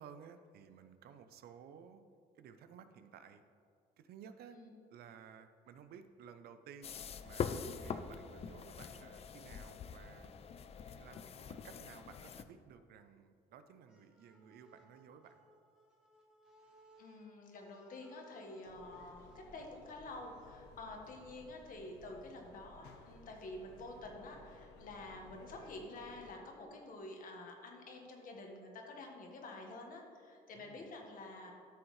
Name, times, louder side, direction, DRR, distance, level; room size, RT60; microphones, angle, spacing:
voice 1, 0.0-2.0 2.3-3.4 4.0-4.6 4.9-10.3 11.0-15.4 30.5-30.9, right 7 dB, 65° right, 10 dB, 0.6 m, -56 dB
sound 1, 6.8-12.4, left 6 dB, 35° left, 0.4 m, -44 dB
sound 2, 13.9-20.6, equal, 5° right, 1.6 m, -66 dB
voice 2, 17.0-31.5, left 2 dB, 55° left, 1 dB, 1.5 m, -49 dB
sound 3, 18.6-26.3, left 3 dB, 85° left, 0.8 m, -58 dB
12.5 x 6.3 x 3.2 m, 2.3 s
cardioid pair, 110°, 17 cm